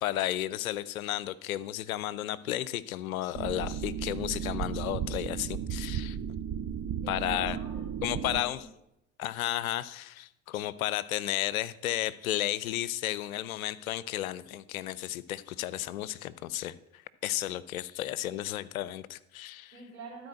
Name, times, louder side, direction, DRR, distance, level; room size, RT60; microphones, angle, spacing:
voice 1, 0.0-6.2 7.1-7.6 8.0-8.6 9.2-19.7, left 14 dB, 80° left, 18 dB, 0.6 m, -33 dB
sound 1, 3.3-8.4, right 8 dB, 35° right, 0.8 m, -35 dB
voice 2, 7.0-8.7 19.7-20.3, right 3 dB, 90° right, -3 dB, 3.9 m, -46 dB
13.0 x 4.7 x 7.6 m, 0.84 s
hypercardioid pair, 65°, 41 cm